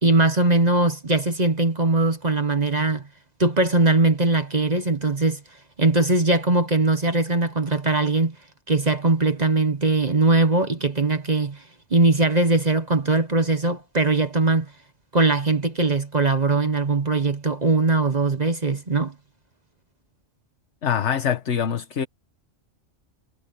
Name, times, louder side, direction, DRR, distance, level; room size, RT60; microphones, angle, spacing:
voice 1, 0.0-3.0 3.4-5.4 5.8-8.3 8.7-11.6 11.9-14.7 15.1-19.1, right 3 dB, 35° right, 1.3 m, -20 dB
voice 2, 20.8-22.1, left 8 dB, 65° left, 1.5 m, -24 dB
omnidirectional pair, 1.3 m